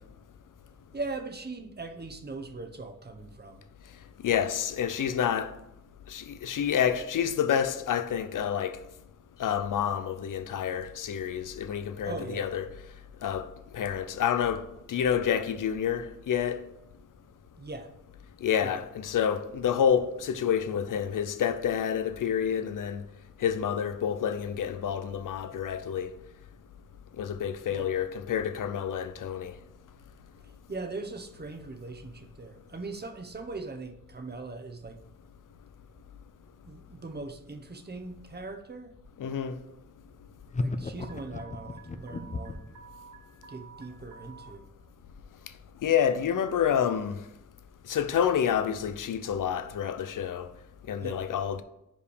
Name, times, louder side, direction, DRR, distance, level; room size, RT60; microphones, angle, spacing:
voice 1, 0.9-3.6 12.0-12.5 17.6-17.9 18.6-18.8 27.7-27.9 30.4-35.0 36.6-39.0 40.6-42.7 43.5-44.7 51.0-51.2, right 3 dB, 30° right, 0.9 m, -40 dB
voice 2, 4.2-5.5 6.1-8.8 9.4-12.6 13.2-13.5 13.7-16.6 18.4-23.0 23.4-26.1 27.2-29.5 39.2-39.5 45.8-47.2 47.9-50.4 50.9-51.6, left 8 dB, 75° left, 0.6 m, -28 dB
sound 1, 40.5-42.7, left 3 dB, 25° left, 0.5 m, -34 dB
Alarm, 41.0-44.5, right 6 dB, 85° right, 0.9 m, -51 dB
5.2 x 5.1 x 4.9 m
wide cardioid pair, 85°, 32 cm